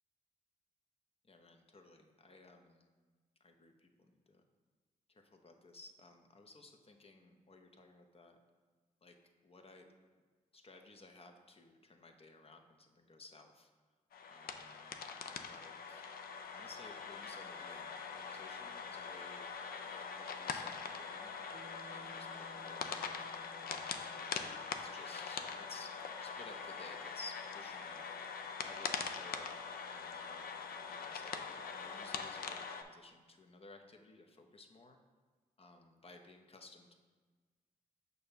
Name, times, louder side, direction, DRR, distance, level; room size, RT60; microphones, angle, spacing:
voice 1, 1.2-2.9 3.4-4.4 5.1-8.4 9.0-9.9 10.5-13.7 14.3-16.1 16.5-19.5 19.9-21.4 21.9-23.3 23.6-24.0 24.8-26.0 26.2-28.3 28.6-29.5 29.9-35.0 35.6-36.9, left 3 dB, 40° left, 4 dB, 0.8 m, -57 dB
sound 1, 14.1-32.8, left 6 dB, 80° left, 0.4 m, -43 dB
Bass guitar, 21.5-25.9, right 2 dB, 80° right, 0.6 m, -60 dB
6.4 x 2.7 x 5.6 m, 1.4 s
cardioid pair, 55°, 15 cm